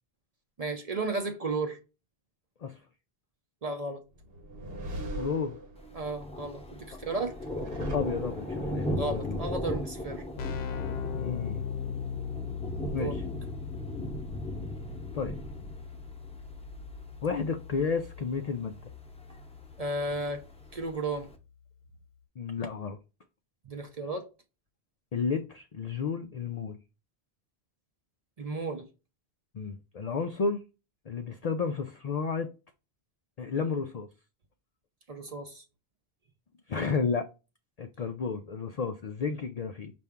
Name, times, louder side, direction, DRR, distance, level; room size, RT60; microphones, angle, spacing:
voice 1, 0.6-1.8 3.6-4.0 5.9-7.4 8.9-10.2 12.9-13.2 19.8-20.4 20.7-21.3 23.7-24.3 28.4-28.9 35.1-35.6, right 2 dB, 45° right, 0.6 m, -33 dB
sound 1, 4.2-6.2 7.2-8.7, equal, 65° right, 1.1 m, -40 dB
voice 2, 5.2-5.6 7.9-9.4 11.1-11.6 12.9-13.2 15.1-15.4 17.2-18.8 22.4-23.0 25.1-26.8 29.5-30.6 31.1-32.5 33.4-34.1 36.7-37.2 37.8-39.9, left 5 dB, 55° left, 0.5 m, -32 dB
Thunder, 5.8-21.4, equal, 5° left, 0.8 m, -38 dB
Keyboard (musical), 10.1-20.7, left 7 dB, 80° left, 0.9 m, -39 dB
5.5 x 2.6 x 3.5 m
omnidirectional pair, 1.1 m